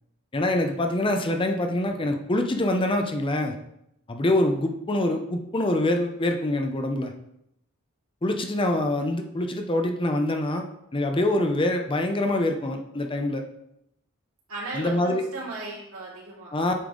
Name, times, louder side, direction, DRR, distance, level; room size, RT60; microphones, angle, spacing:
voice 1, 0.3-3.5 4.1-7.1 8.2-10.6 10.9-13.4 14.7-15.2 16.5-16.7, left 1 dB, 25° left, 4 dB, 0.6 m, -25 dB
voice 2, 14.5-16.5, right 2 dB, 70° right, -5 dB, 2.9 m, -36 dB
8.3 x 5.3 x 3.8 m, 0.81 s
head